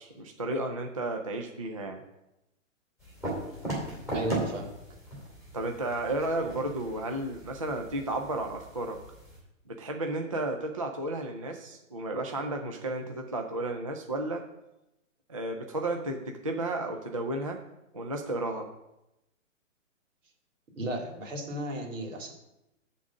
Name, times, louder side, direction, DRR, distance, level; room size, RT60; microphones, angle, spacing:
voice 1, 0.0-2.0 5.5-9.0 9.7-14.4 15.3-17.6 17.9-18.7, right 2 dB, 30° right, 2 dB, 0.4 m, -33 dB
sound 1, 3.0-9.4, right 1 dB, 5° right, 2.5 m, -38 dB
voice 2, 4.1-4.7 20.8-22.3, right 1 dB, 70° right, 1 dB, 2.6 m, -34 dB
9.8 x 3.8 x 7.2 m, 0.90 s
hypercardioid pair, 165°, 39 cm